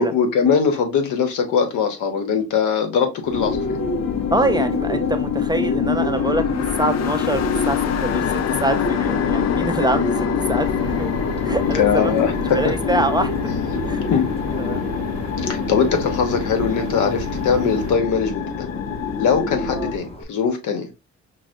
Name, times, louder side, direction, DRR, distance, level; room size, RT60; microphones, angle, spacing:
voice 1, 0.0-3.8 11.7-12.6 14.0-14.3 15.4-18.7 19.2-20.9, left 6 dB, 80° left, 1.0 m, -21 dB
Bird, 3.2-20.2, equal, 20° left, 0.7 m, -32 dB
sound 1, 3.3-20.0, left 8 dB, 60° left, 0.5 m, -24 dB
voice 2, 4.3-12.2 12.5-13.4 13.8-14.0 14.6-14.9 19.7-19.9, right 2 dB, 15° right, 0.3 m, -25 dB
sound 2, 10.6-18.0, right 7 dB, 90° right, 0.6 m, -34 dB
5.9 x 2.1 x 2.5 m
cardioid pair, 90°, 30 cm